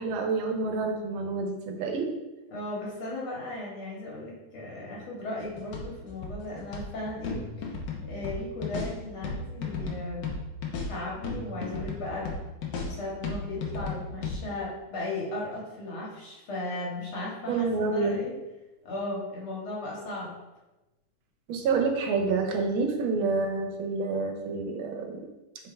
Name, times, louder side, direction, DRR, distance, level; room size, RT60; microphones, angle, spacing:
voice 1, 0.0-2.2 17.5-18.2 21.5-25.3, right 4 dB, 80° right, 4 dB, 1.6 m, -28 dB
voice 2, 2.5-7.4 8.1-10.3 10.9-12.3 12.8-18.3 18.8-20.3, left 2 dB, 85° left, -4 dB, 2.5 m, -36 dB
sound 1, 5.4-14.4, left 4 dB, 65° left, 1.5 m, -35 dB
8.5 x 3.5 x 3.3 m, 1.0 s
omnidirectional pair, 2.2 m